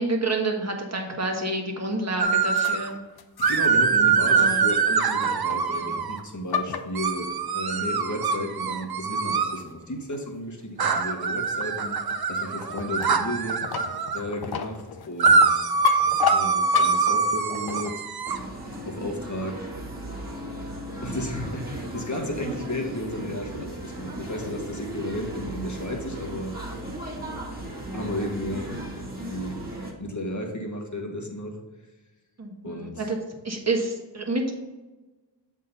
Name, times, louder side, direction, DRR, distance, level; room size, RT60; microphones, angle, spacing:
voice 1, 0.0-3.0 4.3-4.7 5.7-5.9 32.4-33.2 33.4-34.5, right 2 dB, 35° right, 2 dB, 1.4 m, -28 dB
sound 1, 2.2-2.9 3.4-6.2 6.9-9.6 10.8-14.2 15.2-18.4, right 5 dB, 60° right, 0.7 m, -23 dB
sound 2, 2.6-3.8 4.2-4.6 5.2-5.8 6.2-7.5 8.2-8.3 8.8-8.9 9.5-9.8 10.1-10.4 10.9-18.3, left 7 dB, 60° left, 0.6 m, -32 dB
voice 2, 3.5-12.0 12.3-13.7 14.1-15.6 16.3-18.0 18.8-19.7 21.0-26.7 27.9-29.6 30.0-31.6 32.6-33.1, left 1 dB, 40° left, 1 dB, 1.5 m, -33 dB
sound 3, 18.3-29.9, right 1 dB, 20° right, 1.9 m, -36 dB
7.6 x 3.7 x 5.6 m, 1.2 s
wide cardioid pair, 70°, 44 cm